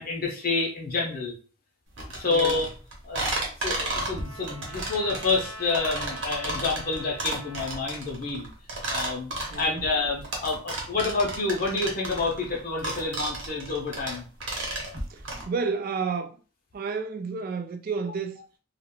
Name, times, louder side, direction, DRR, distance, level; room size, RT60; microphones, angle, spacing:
voice 1, 0.0-1.3 2.2-2.7 3.0-3.2 3.6-8.5 8.9-14.2, left 3 dB, 45° left, 0.5 m, -28 dB
sound 1, 2.0-15.4, right 2 dB, 60° right, 0.9 m, -33 dB
voice 2, 2.2-2.6 9.5-9.9 15.1-16.3 16.7-18.4, right 5 dB, 45° right, 0.3 m, -31 dB
Trumpet, 3.5-7.9, right 1 dB, 85° right, 0.8 m, -44 dB
2.3 x 2.2 x 3.6 m
head